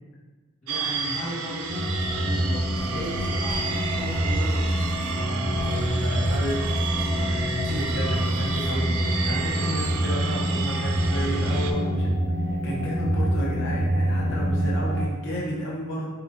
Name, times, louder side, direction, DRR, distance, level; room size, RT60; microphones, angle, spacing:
voice 1, 0.6-4.7, equal, 30° left, -7 dB, 1.2 m, -36 dB
sound 1, 0.7-11.7, right 5 dB, 70° right, 0.4 m, -32 dB
sound 2, 1.7-15.1, equal, 15° left, 0.4 m, -26 dB
Writing, 2.8-8.8, equal, 85° left, 1.0 m, -42 dB
voice 2, 5.2-6.7 7.2-12.1 12.3-16.0, equal, 55° left, -4 dB, 0.7 m, -32 dB
4.0 x 2.9 x 2.6 m, 1.3 s
head